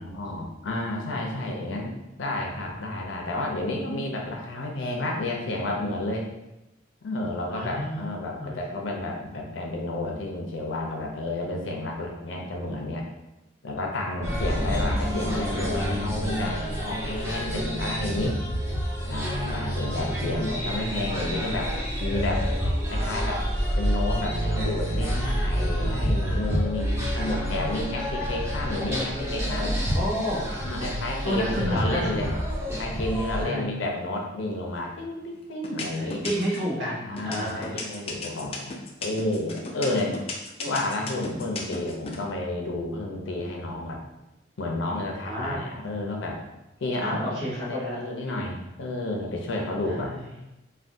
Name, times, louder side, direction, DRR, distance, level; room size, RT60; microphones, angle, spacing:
voice 1, 0.0-1.9 2.2-6.3 7.0-13.1 13.6-18.4 19.1-21.7 22.0-22.5 22.9-23.4 23.8-29.8 30.6-32.3 32.8-36.2 37.0-40.2 40.6-44.0 44.6-46.4 46.8-50.1, left 2 dB, 75° left, 0 dB, 0.6 m, -31 dB
voice 2, 7.5-8.6 14.1-14.9 19.5-20.7 26.9-28.1 29.9-30.5 31.2-32.3 33.4-33.8 35.9-37.8 45.2-45.7 47.0-48.3 49.8-50.3, equal, 65° right, -6 dB, 1.1 m, -32 dB
sound 1, 14.2-33.4, equal, 15° right, 0.7 m, -28 dB
sound 2, 34.7-35.2 35.6-36.7 37.2-42.2, left 4 dB, 30° left, 0.3 m, -35 dB
3.4 x 2.3 x 2.6 m, 0.93 s
head